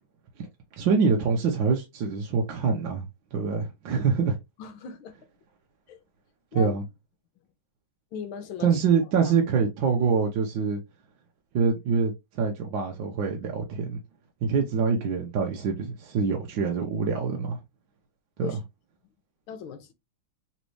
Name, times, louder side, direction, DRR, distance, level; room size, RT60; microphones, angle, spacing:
voice 1, 0.8-4.4 6.5-6.8 8.6-10.8 11.5-14.0 14.4-17.6 18.4-18.5, right 5 dB, 65° right, 1.5 m, -25 dB
voice 2, 4.6-5.1 5.9-6.0 6.5-6.8 8.1-8.7 9.2-9.3 18.4-18.6 19.5-19.9, left 8 dB, 75° left, 1.6 m, -37 dB
4.1 x 3.2 x 3.1 m
omnidirectional pair, 2.4 m